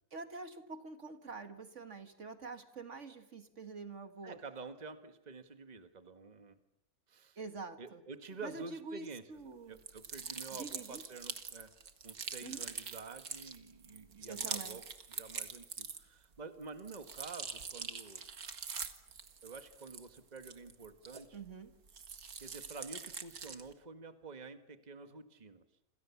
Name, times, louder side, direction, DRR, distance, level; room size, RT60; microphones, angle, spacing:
voice 1, 0.1-4.4 7.4-8.0 8.4-9.8 10.5-11.0 12.4-12.7 14.3-14.8 21.3-21.7, right 4 dB, 55° right, 8 dB, 1.9 m, -46 dB
voice 2, 4.2-6.6 7.1-7.4 7.8-11.7 12.0-14.8 15.1-18.2 19.4-21.4 22.4-25.6, right 4 dB, 30° right, 9 dB, 1.7 m, -49 dB
sound 1, 9.8-16.2 16.6-21.5 21.9-23.7, right 6 dB, 80° right, 2.2 m, -44 dB
27.5 x 27.0 x 7.2 m, 0.78 s
omnidirectional pair, 1.5 m